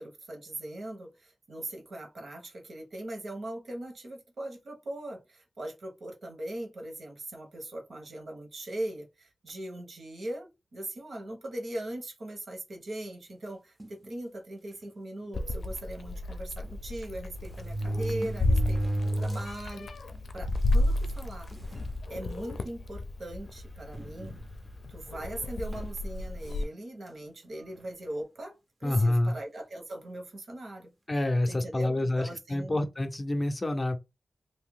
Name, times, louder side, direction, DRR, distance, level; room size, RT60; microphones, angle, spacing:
voice 1, 0.0-18.9 19.2-21.5 22.1-24.4 24.9-30.9 31.5-32.8, right 1 dB, 65° right, 1.2 m, -40 dB
sound 1, 13.8-14.1 14.8-14.9 15.2-15.3 16.6-16.7 17.4-19.7 20.1-20.2 21.0-21.1 21.5-21.9 22.5-22.7 23.9-24.8 25.7-26.0, right 1 dB, 20° right, 0.5 m, -33 dB
Meow, 15.3-26.6, left 1 dB, 75° left, 0.5 m, -32 dB
voice 2, 28.8-29.3 31.1-34.0, left 1 dB, 25° left, 0.5 m, -27 dB
2.7 x 2.7 x 3.6 m
wide cardioid pair, 125°, 0 cm